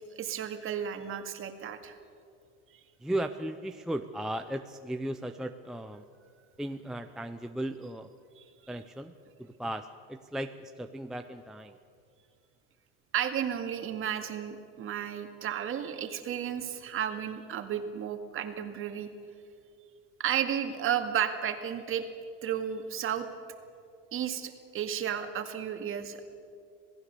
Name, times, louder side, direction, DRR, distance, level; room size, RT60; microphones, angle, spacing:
voice 1, 0.2-2.0 8.4-8.5 13.1-19.1 20.2-22.1 22.4-23.3 24.1-26.2, right 9 dB, 35° right, 6 dB, 2.1 m, -33 dB
voice 2, 3.0-6.0 6.6-8.1 8.7-9.1 9.4-11.8, right 1 dB, ahead, 6 dB, 0.5 m, -36 dB
27.5 x 17.5 x 6.8 m, 2.4 s
supercardioid pair, 130°, 35 cm